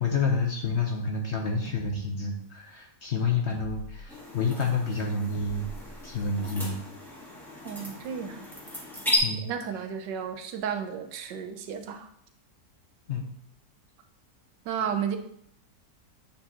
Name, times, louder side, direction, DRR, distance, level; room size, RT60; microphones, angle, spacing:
voice 1, 0.0-5.7 6.0-6.8 9.2-9.5 13.1-13.2, left 4 dB, 55° left, 1 dB, 0.8 m, -29 dB
sound 1, 1.7-1.9 3.5-4.0 5.3-6.5, left 1 dB, 20° left, 0.9 m, -43 dB
sound 2, 4.1-9.2, left 2 dB, ahead, 1.4 m, -35 dB
voice 2, 7.6-8.5 9.4-12.1 14.6-15.2, right 7 dB, 85° right, 6 dB, 1.4 m, -33 dB
8.6 x 4.5 x 2.9 m, 0.70 s
omnidirectional pair, 1.8 m